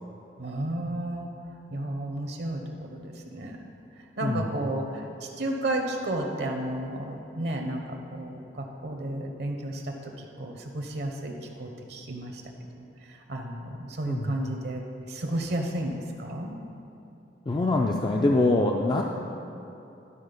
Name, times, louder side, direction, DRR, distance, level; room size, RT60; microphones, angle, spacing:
voice 1, 0.4-1.3 1.7-3.7 4.0-16.6, right 1 dB, 60° right, 3 dB, 0.7 m, -33 dB
voice 2, 17.5-19.0, left 2 dB, 25° left, 0 dB, 0.3 m, -24 dB
11.5 x 4.1 x 5.2 m, 2.9 s
head